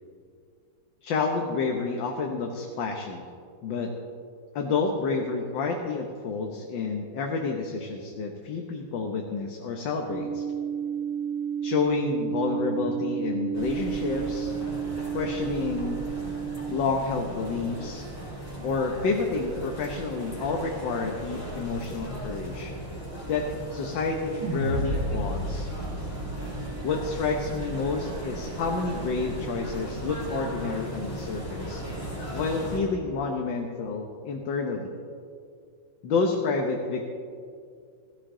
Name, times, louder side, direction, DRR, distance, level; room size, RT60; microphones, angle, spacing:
voice 1, 1.0-3.2 3.6-3.9 4.5-10.4 11.6-14.5 15.1-16.1 16.7-18.1 18.6-22.7 23.3-25.7 26.8-31.8 32.3-35.0 36.0-37.1, left 4 dB, 70° left, 2 dB, 1.7 m, -29 dB
sound 1, 10.1-16.8, right 8 dB, 85° right, 0.6 m, -31 dB
sound 2, 13.5-32.8, right 1 dB, 5° left, 4.1 m, -37 dB
sound 3, 24.4-28.8, equal, 55° right, 2.1 m, -33 dB
16.0 x 14.5 x 3.8 m, 2.3 s
omnidirectional pair, 2.2 m